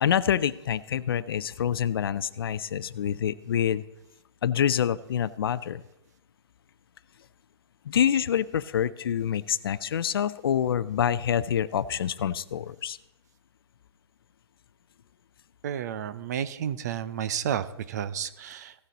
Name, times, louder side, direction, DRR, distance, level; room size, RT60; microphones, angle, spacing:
voice 1, 0.0-3.8 4.4-5.8 7.8-13.0, left 9 dB, 60° left, 17 dB, 0.5 m, -26 dB
voice 2, 15.6-18.7, right 9 dB, 40° right, 15 dB, 0.5 m, -31 dB
16.0 x 6.7 x 4.1 m, 0.88 s
hypercardioid pair, 155°, 14 cm